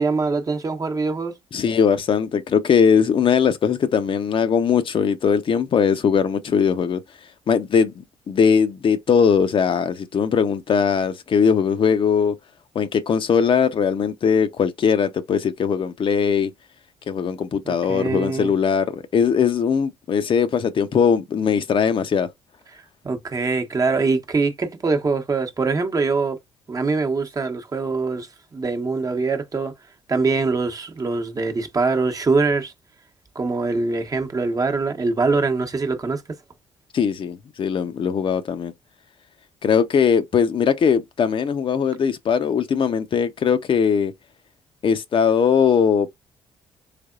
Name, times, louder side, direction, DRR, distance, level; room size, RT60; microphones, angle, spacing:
voice 1, 0.0-1.3 17.6-18.5 23.0-26.4 26.7-28.3 28.5-29.7 30.1-32.7 33.3-36.2, right 4 dB, 35° right, 0.9 m, -23 dB
voice 2, 1.5-7.0 7.5-7.9 8.3-12.3 12.7-16.5 17.1-22.3 36.9-38.7 39.6-44.1 44.8-46.1, left 7 dB, 50° left, 0.7 m, -20 dB
3.4 x 3.4 x 2.4 m
supercardioid pair, 65°, 11 cm